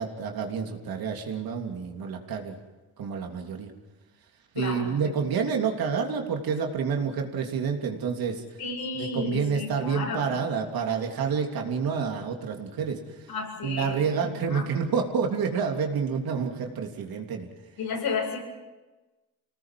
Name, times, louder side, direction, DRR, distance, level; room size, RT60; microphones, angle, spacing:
voice 1, 0.0-2.6 3.0-3.7 4.5-8.4 8.9-13.0 13.6-17.5, right 6 dB, 70° right, 2 dB, 3.2 m, -28 dB
voice 2, 4.5-5.0 8.6-10.3 13.3-14.7 17.8-18.4, left 4 dB, 80° left, 0 dB, 7.8 m, -32 dB
26.0 x 19.0 x 7.7 m, 1.2 s
cardioid pair, 75°, 37 cm